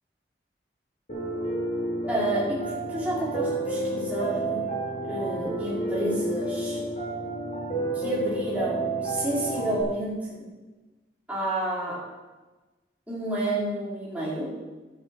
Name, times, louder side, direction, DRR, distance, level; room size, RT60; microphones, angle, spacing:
Piano, 1.1-9.8, right 2 dB, 45° left, 3.3 m, -30 dB
voice 1, 2.1-4.7 5.0-6.8 7.9-10.5 11.3-12.0 13.1-14.5, right 1 dB, 10° right, -8 dB, 3.7 m, -30 dB
11.5 x 9.7 x 4.4 m, 1.2 s
head